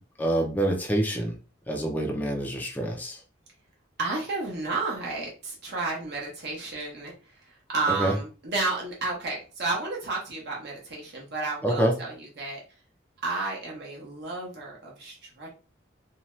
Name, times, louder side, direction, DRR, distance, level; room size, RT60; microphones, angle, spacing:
voice 1, 0.2-1.3 1.7-3.2 7.9-8.1 11.6-11.9, right 1 dB, 10° left, 1 dB, 0.4 m, -26 dB
voice 2, 4.0-12.6 13.2-15.5, right 3 dB, 55° right, -2 dB, 0.9 m, -32 dB
2.7 x 2.2 x 3.0 m, 0.35 s
head